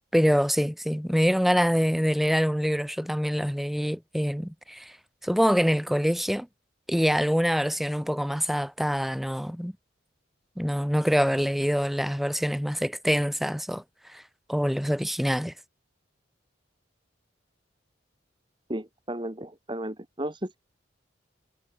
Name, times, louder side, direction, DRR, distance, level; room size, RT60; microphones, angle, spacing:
voice 1, 0.1-5.0 5.2-6.5 6.9-9.7 10.6-14.2 14.5-15.5, equal, ahead, 1.5 m, -25 dB
voice 2, 18.7-20.6, right 1 dB, 25° right, 2.6 m, -34 dB
head